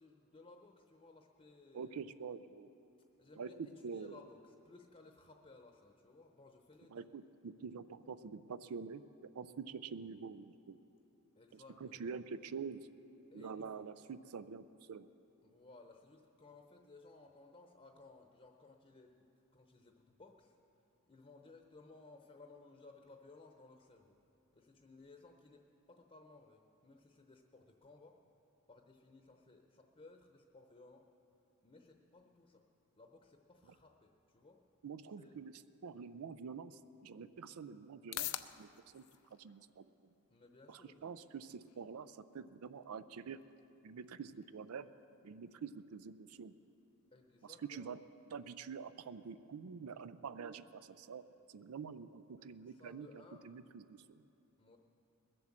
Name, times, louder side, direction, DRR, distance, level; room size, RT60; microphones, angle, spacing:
voice 1, 0.0-1.9 3.2-7.1 11.4-12.1 13.3-13.8 15.4-19.3 19.5-20.6 21.1-24.2 24.5-28.2 28.7-31.1 31.6-32.7 33.0-34.6 35.2-35.4 40.3-41.0 47.1-47.9 52.4-53.5 54.6-54.8, left 3 dB, 30° left, 3 dB, 0.8 m, -60 dB
voice 2, 1.7-2.7 3.4-3.5 3.8-4.2 6.9-9.0 9.3-10.8 11.5-12.9 13.3-15.1 34.8-38.3 38.6-38.7 38.9-39.0 39.3-40.1 40.7-43.4 43.8-44.9 45.2-46.5 47.4-48.0 48.3-51.2 51.5-54.2, right 6 dB, 80° right, 13 dB, 0.4 m, -47 dB
sound 1, 36.6-53.6, left 14 dB, 80° left, 0.5 m, -54 dB
20.5 x 7.8 x 7.3 m, 2.9 s
head